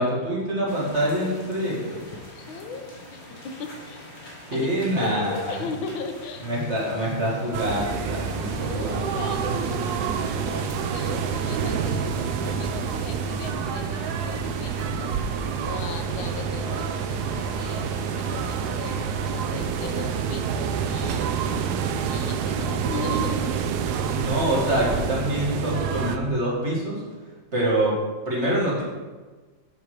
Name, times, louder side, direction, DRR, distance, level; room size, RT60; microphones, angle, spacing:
voice 1, 0.0-2.0 4.5-5.6 6.4-10.6 24.0-27.0 27.5-27.9 28.3-28.8, right 1 dB, 35° right, -5 dB, 2.3 m, -26 dB
sound 1, 0.7-20.3, left 1 dB, 35° left, 1.7 m, -44 dB
voice 2, 2.3-2.8 3.1-4.1 4.5-4.7 5.0-6.5 8.4-9.8 10.1-15.2 15.6-21.3 22.1-23.5, left 4 dB, 85° left, 5 dB, 1.6 m, -37 dB
Coffee House in Alexandria, 7.5-26.2, right 6 dB, 75° right, 0.9 m, -28 dB
7.6 x 5.4 x 4.8 m, 1.3 s
omnidirectional pair, 2.1 m